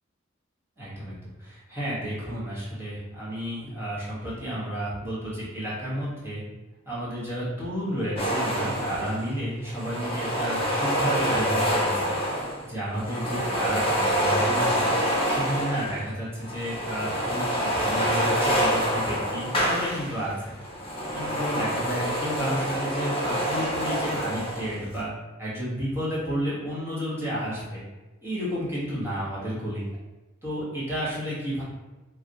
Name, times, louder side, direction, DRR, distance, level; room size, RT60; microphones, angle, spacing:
voice 1, 0.8-6.4 6.8-12.1 12.7-14.9 15.2-20.5 21.1-25.1 25.4-27.8 28.2-29.8 30.4-31.6, equal, 15° right, -9 dB, 1.2 m, -31 dB
sound 1, 8.2-9.3 9.6-12.7 12.9-16.0 16.4-20.3 20.6-24.8, equal, 30° left, 0.5 m, -26 dB
2.4 x 2.3 x 4.0 m, 1.1 s
head